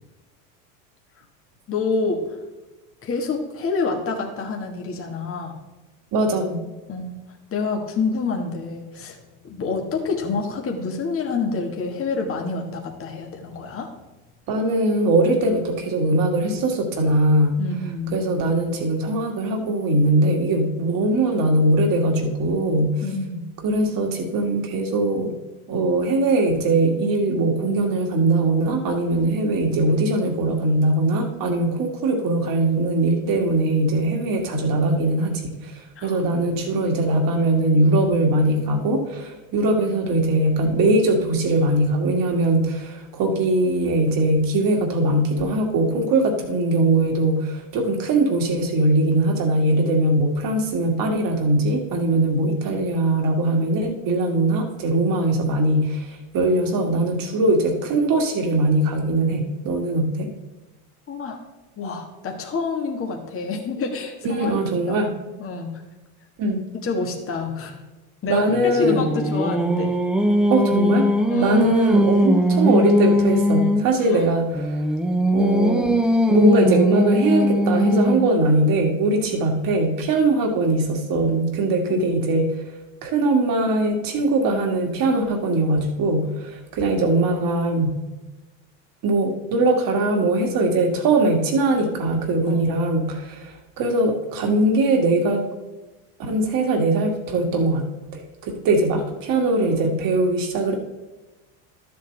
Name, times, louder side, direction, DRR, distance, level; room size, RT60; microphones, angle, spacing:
voice 1, 1.7-2.4 3.0-5.6 6.9-7.1 7.5-9.2 9.4-13.9 17.6-18.1 23.0-23.4 36.0-36.2 61.1-61.4 61.8-64.5 64.9-65.1 65.4-65.8 66.8-67.8 68.2-70.0 71.3-71.7 74.0-74.3 81.9-82.2 92.5-92.7, left 4 dB, 30° left, 1 dB, 1.6 m, -27 dB
voice 2, 6.1-6.6 14.5-17.6 18.1-23.0 23.6-25.3 25.7-60.3 64.2-65.1 66.4-66.6 68.3-69.1 70.5-71.1 71.4-74.8 75.3-76.0 76.3-82.5 83.0-88.0 89.0-95.4 96.2-97.8 98.1-100.8, right 2 dB, 50° right, 3 dB, 2.1 m, -21 dB
Singing, 68.5-73.9 74.5-78.4, equal, ahead, 0.6 m, -20 dB
12.0 x 7.8 x 3.3 m, 1.1 s
supercardioid pair, 100°, 43 cm